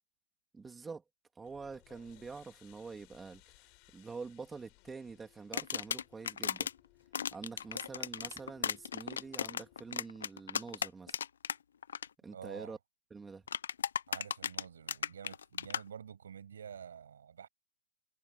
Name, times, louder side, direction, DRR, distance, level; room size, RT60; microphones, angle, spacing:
voice 1, 0.5-1.0 1.4-6.7 7.3-11.2 12.2-12.8 13.1-13.4, right 4 dB, 5° right, 2.8 m, -46 dB
sound 1, 1.4-9.9, left 30 dB, 30° left, 4.5 m, -64 dB
sound 2, 5.5-6.7 7.1-11.6 11.8-12.1 13.5-15.8, left 8 dB, 80° left, 0.7 m, -36 dB
voice 2, 12.3-12.8 14.1-17.5, right 8 dB, 85° right, 7.6 m, -49 dB
hypercardioid pair, 170°, 0 cm